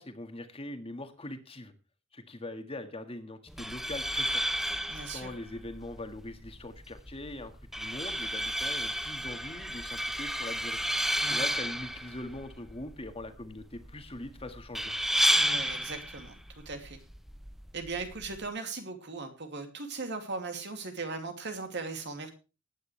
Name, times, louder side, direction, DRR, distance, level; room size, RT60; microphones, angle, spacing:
voice 1, 0.0-1.7 2.1-4.4 5.1-10.8 11.3-14.9, left 1 dB, 30° left, 7 dB, 1.7 m, -42 dB
sound 1, 3.5-18.5, equal, ahead, 0.8 m, -32 dB
voice 2, 4.9-5.3 11.2-11.5 15.4-17.0 17.7-22.3, right 3 dB, 60° right, 6 dB, 2.6 m, -38 dB
19.0 x 9.5 x 3.3 m, 0.32 s
head